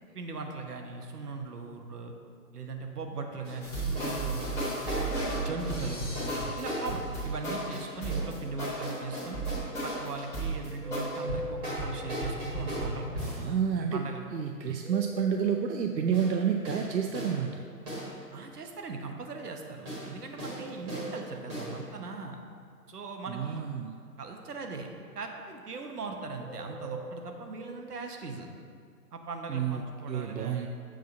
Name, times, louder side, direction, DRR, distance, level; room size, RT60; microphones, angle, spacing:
voice 1, 0.1-2.1 2.5-4.4 4.8-5.1 5.4-6.1 6.6-9.4 9.8-13.3 13.9-14.2 18.3-22.4 22.9-23.6 24.2-24.9 25.1-28.5 29.1-30.7, right 3 dB, 70° right, 3 dB, 1.1 m, -39 dB
sound 1, 3.4-3.6 4.0-4.1 4.4-7.1 7.7-8.3 8.8-10.3 11.1-13.5 16.1-16.3 16.6-16.8 17.1-17.3 17.9-18.1 19.8-20.1 20.4-20.6 20.9-21.1 21.5-21.7, right 1 dB, 15° right, 1.5 m, -36 dB
sound 2, 3.6-11.0, right 2 dB, 5° left, 1.2 m, -34 dB
sound 3, 10.8-12.2 14.8-16.2 20.4-21.8 26.4-27.8, right 1 dB, 45° right, 0.7 m, -41 dB
voice 2, 13.4-14.0 14.3-17.6 23.3-23.9 29.5-29.8 30.1-30.7, right 7 dB, 90° right, 4 dB, 0.6 m, -29 dB
7.5 x 3.9 x 5.4 m, 2.2 s
figure-of-eight pair, 150°, 49 cm